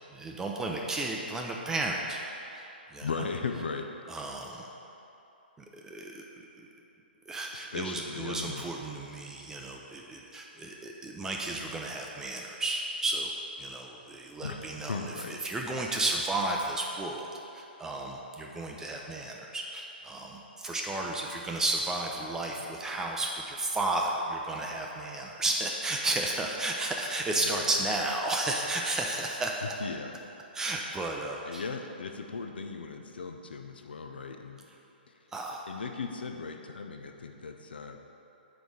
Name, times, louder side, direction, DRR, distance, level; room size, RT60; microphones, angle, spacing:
voice 1, 0.0-2.2 2.5-3.3 4.1-4.7 5.7-6.2 6.6-6.7 7.3-13.3 13.6-29.7 30.5-31.6 35.3-35.7, right 2 dB, 10° right, 0 dB, 0.4 m, -33 dB
voice 2, 3.0-3.9 7.7-8.8 14.4-15.4 22.5-22.6 27.4-27.9 29.6-30.1 31.5-34.6 35.7-38.0, left 4 dB, 70° left, 5 dB, 0.5 m, -37 dB
5.2 x 4.9 x 6.0 m, 2.9 s
figure-of-eight pair, 125°, 6 cm